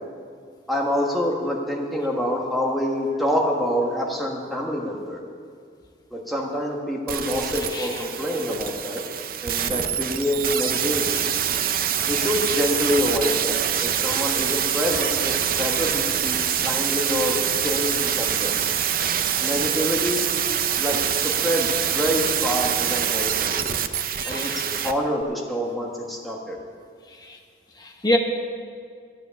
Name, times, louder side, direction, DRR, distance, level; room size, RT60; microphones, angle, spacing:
voice 1, 0.7-5.2 6.1-9.0 9.4-11.2 12.1-15.3 15.6-16.4 16.6-18.5 19.4-20.3 20.8-21.0 21.2-23.7 24.2-26.6, equal, ahead, -2 dB, 1.4 m, -26 dB
sound 1, 7.1-24.9 25.2-25.3, right 9 dB, 50° right, 0.6 m, -25 dB
voice 2, 7.7-8.0 24.2-24.6 27.2-27.4 27.8-28.2, left 1 dB, 20° left, 1 dB, 1.1 m, -26 dB
13.0 x 9.7 x 7.1 m, 2.2 s
head